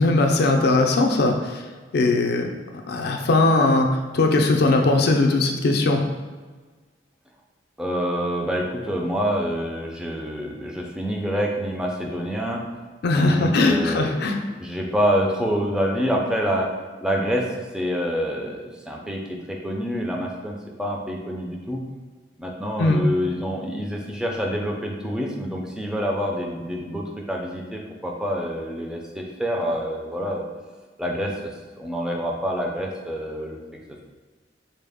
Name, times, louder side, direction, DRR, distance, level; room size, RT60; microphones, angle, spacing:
voice 1, 0.0-1.7 1.9-2.5 2.9-6.0 13.0-14.4 22.8-23.0, left 2 dB, 60° left, 3 dB, 0.4 m, -19 dB
voice 2, 7.8-12.6 13.1-14.1 14.6-16.7 17.0-17.5 17.7-21.8 22.4-30.4 31.0-31.5 31.8-33.6, equal, 5° right, -1 dB, 0.4 m, -27 dB
4.0 x 2.0 x 3.4 m, 1.4 s
head